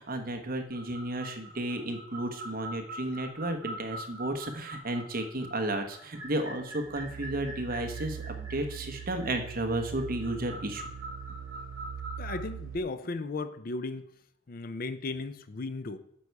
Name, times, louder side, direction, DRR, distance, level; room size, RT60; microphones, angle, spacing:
voice 1, 0.0-10.8, right 1 dB, 50° right, 5 dB, 1.1 m, -33 dB
sound 1, 0.7-12.4, right 1 dB, 15° right, 4.0 m, -44 dB
sound 2, 6.8-12.8, right 8 dB, 80° right, 0.4 m, -42 dB
voice 2, 12.2-14.1 14.5-16.0, left 3 dB, 50° left, 11 dB, 0.5 m, -35 dB
9.9 x 6.9 x 4.7 m, 0.74 s
head